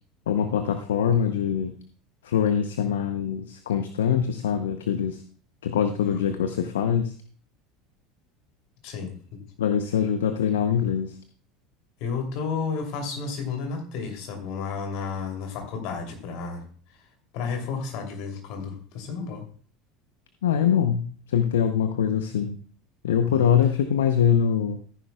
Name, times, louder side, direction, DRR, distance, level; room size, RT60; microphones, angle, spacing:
voice 1, 0.3-1.7 2.2-5.2 5.6-7.1 9.6-11.2 20.4-22.6 23.0-24.8, left 8 dB, 75° left, 9 dB, 0.6 m, -23 dB
voice 2, 6.0-6.4 8.8-9.4 12.0-16.6 17.3-19.4 23.3-23.5, left 5 dB, 60° left, 3 dB, 2.8 m, -32 dB
14.0 x 10.0 x 2.3 m, 0.43 s
figure-of-eight pair, 70°, 0 cm